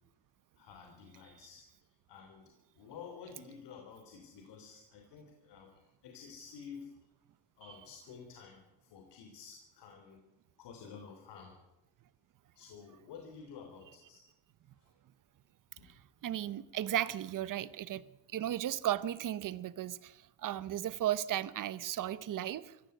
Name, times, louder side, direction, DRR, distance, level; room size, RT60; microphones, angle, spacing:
voice 1, 0.6-1.7 2.1-2.4 2.8-6.9 7.6-10.2 10.6-11.6 12.6-14.2 15.8-15.9, left 6 dB, 65° left, 3.5 m, -51 dB
voice 2, 15.9-18.0 18.3-22.8, right 12 dB, 45° right, 1.0 m, -35 dB
24.5 x 15.5 x 8.0 m
cardioid pair, 155°, 44 cm